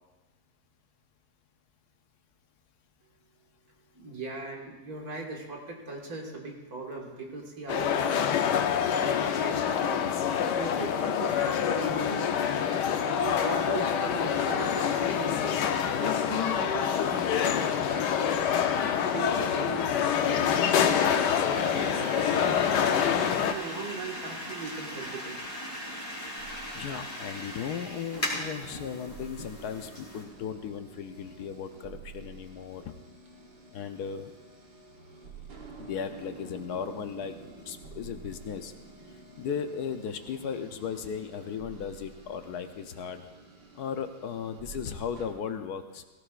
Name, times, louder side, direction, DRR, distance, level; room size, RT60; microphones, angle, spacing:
voice 1, 3.9-10.0 10.4-12.4 13.1-15.7 16.0-18.3 19.1-22.9 23.3-25.4, right 2 dB, 60° right, 0 dB, 2.3 m, -39 dB
sound 1, 7.7-23.5, left 8 dB, 90° left, 1.4 m, -26 dB
sound 2, 20.2-30.2, left 1 dB, 20° left, 3.6 m, -39 dB
voice 2, 26.0-26.4 26.7-32.9 33.7-34.3 35.8-37.3 37.7-38.7 39.4-43.3 43.7-46.0, left 7 dB, 70° left, 8 dB, 1.2 m, -36 dB
sound 3, 26.4-45.3, right 4 dB, 90° right, 2.3 m, -49 dB
17.5 x 17.0 x 2.5 m, 1.2 s
omnidirectional pair, 1.8 m